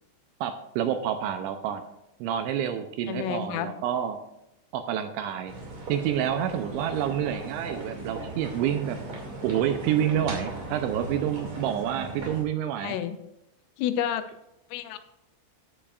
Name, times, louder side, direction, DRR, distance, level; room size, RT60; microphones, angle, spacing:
voice 1, 0.4-1.8 2.2-4.2 4.7-5.5 5.9-9.0 9.4-13.0, right 10 dB, 85° right, 8 dB, 2.8 m, -28 dB
voice 2, 3.1-3.7 12.8-13.2 13.8-14.2 14.7-15.0, left 10 dB, 85° left, 9 dB, 3.4 m, -29 dB
sound 1, 5.5-12.4, right 2 dB, 45° right, 2.7 m, -38 dB
13.5 x 10.0 x 2.4 m, 0.87 s
omnidirectional pair, 5.7 m